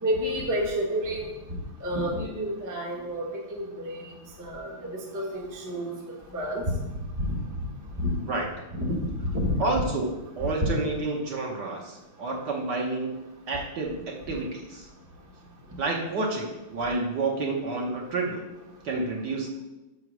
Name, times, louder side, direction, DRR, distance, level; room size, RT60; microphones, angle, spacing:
voice 1, 0.0-1.3 1.8-4.1 4.4-4.7 5.1-5.9 6.3-6.7 7.2-7.4 8.0-8.1 8.7-9.8 10.6-10.7, equal, 15° right, -2 dB, 0.8 m, -29 dB
voice 2, 9.6-10.1 10.4-14.9 15.8-18.4 18.8-19.5, right 3 dB, 55° right, -1 dB, 1.6 m, -29 dB
6.1 x 4.8 x 6.1 m, 1.0 s
omnidirectional pair, 2.3 m